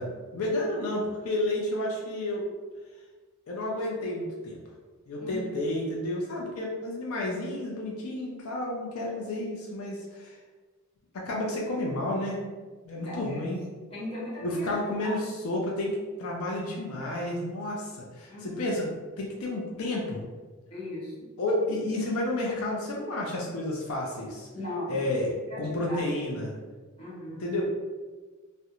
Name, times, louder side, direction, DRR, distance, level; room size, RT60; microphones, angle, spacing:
voice 1, 0.0-2.5 3.5-4.6 5.1-10.4 11.1-12.4 12.8-13.6 14.4-15.2 15.4-18.9 19.2-20.2 21.4-24.5 24.9-25.3 25.6-26.6 27.4-27.6, left 1 dB, 85° left, -2 dB, 0.4 m, -31 dB
voice 2, 5.2-5.6 9.2-9.3 12.9-13.4 13.9-15.2 18.3-18.7 20.7-21.2 24.5-25.0 25.5-26.0 27.0-27.4, left 1 dB, 25° left, -9 dB, 1.1 m, -38 dB
2.4 x 2.1 x 2.9 m, 1.4 s
head